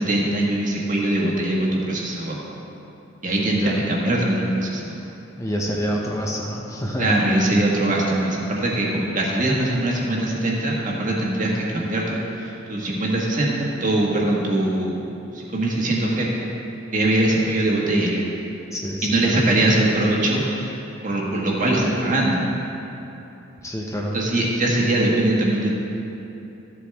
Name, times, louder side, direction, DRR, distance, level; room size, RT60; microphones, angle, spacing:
voice 1, 0.0-2.4 3.2-5.0 7.0-15.0 15.3-16.3 16.9-18.2 19.0-20.7 21.0-22.4 24.1-25.7, right 1 dB, 40° right, -3 dB, 1.5 m, -22 dB
voice 2, 5.4-7.2 18.7-19.5 23.6-24.2, equal, 15° left, -2 dB, 0.8 m, -27 dB
13.0 x 8.1 x 3.5 m, 3.0 s
head